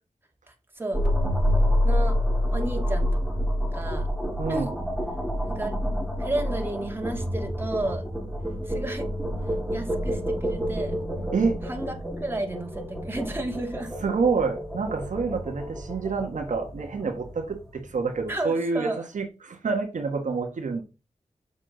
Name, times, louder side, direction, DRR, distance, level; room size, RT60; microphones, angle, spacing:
voice 1, 0.5-1.0 1.8-2.1 2.5-3.1 3.7-4.1 4.5-4.7 5.5-5.7 6.2-8.0 8.6-9.1 9.7-11.0 11.7-13.9 18.3-19.0, right 2 dB, 20° right, 2.4 m, -32 dB
sound 1, 0.9-18.2, equal, ahead, 3.9 m, -28 dB
voice 2, 4.4-4.7 11.3-11.6 14.0-20.8, right 4 dB, 85° right, 1.5 m, -27 dB
7.2 x 6.9 x 3.9 m
wide cardioid pair, 75°, 13 cm